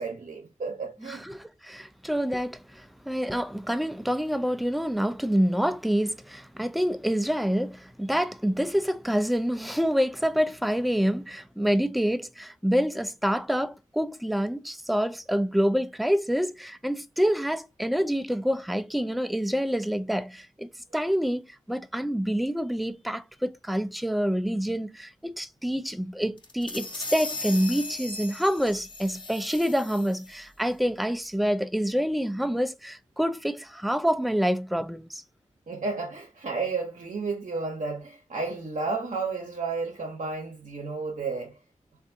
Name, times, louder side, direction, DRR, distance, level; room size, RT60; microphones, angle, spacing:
voice 1, 0.0-1.2 35.7-41.6, right 4 dB, 65° right, 0.8 m, -32 dB
voice 2, 1.1-35.2, equal, ahead, 0.3 m, -27 dB
sound 1, 26.4-30.4, left 2 dB, 35° left, 0.8 m, -37 dB
3.4 x 2.5 x 2.6 m
cardioid pair, 45°, 13 cm